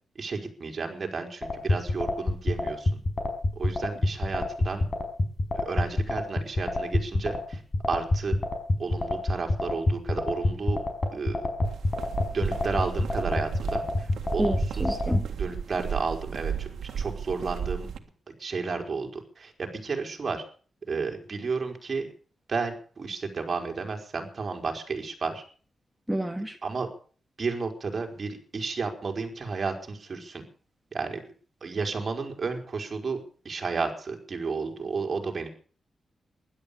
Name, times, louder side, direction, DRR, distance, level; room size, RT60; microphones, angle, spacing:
voice 1, 0.2-3.0 3.6-4.8 5.5-7.6 7.9-8.4 8.8-10.8 11.1-11.5 12.3-14.8 15.3-17.9 18.4-20.4 20.9-22.1 22.5-25.4 26.6-26.9 27.4-30.4 30.9-31.2 31.6-35.5, right 4 dB, 45° right, 4.5 m, -32 dB
sound 1, 1.4-15.2, left 2 dB, 35° left, 5.0 m, -25 dB
sound 2, 11.6-18.0, right 8 dB, 85° right, 1.7 m, -34 dB
voice 2, 14.4-15.3 26.1-26.6, right 1 dB, 5° right, 1.6 m, -29 dB
16.0 x 12.0 x 6.9 m
cardioid pair, 100°, 0 cm